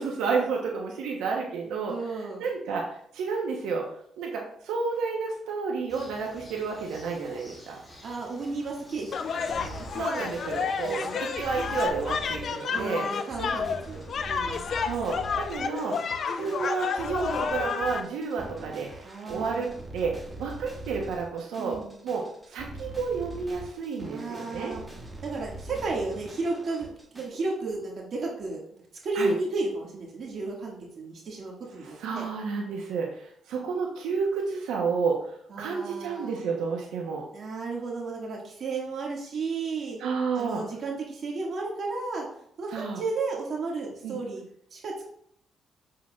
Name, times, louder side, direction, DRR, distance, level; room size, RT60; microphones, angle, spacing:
voice 1, 0.0-1.9 2.4-3.8 4.2-7.8 9.9-13.1 14.8-16.0 16.4-18.9 19.3-21.8 22.0-24.8 29.1-29.3 31.8-37.2 40.0-40.6 42.7-43.0 44.0-44.2, right 5 dB, 90° right, 0 dB, 1.0 m, -31 dB
voice 2, 1.9-2.5 8.0-10.3 10.6-11.2 12.7-14.7 19.0-19.7 21.6-21.9 24.0-24.8 25.2-28.6 29.0-32.3 35.5-36.4 37.3-40.0 40.3-42.3 42.6-44.4 44.7-45.1, right 3 dB, 55° right, -2 dB, 1.9 m, -33 dB
Bird, 5.9-11.9, equal, 20° left, 2.8 m, -49 dB
sound 1, 9.1-18.0, left 6 dB, 55° left, 0.5 m, -30 dB
sound 2, 9.5-27.3, right 2 dB, 15° right, 1.8 m, -43 dB
7.4 x 6.6 x 2.4 m, 0.68 s
cardioid pair, 90°, 0 cm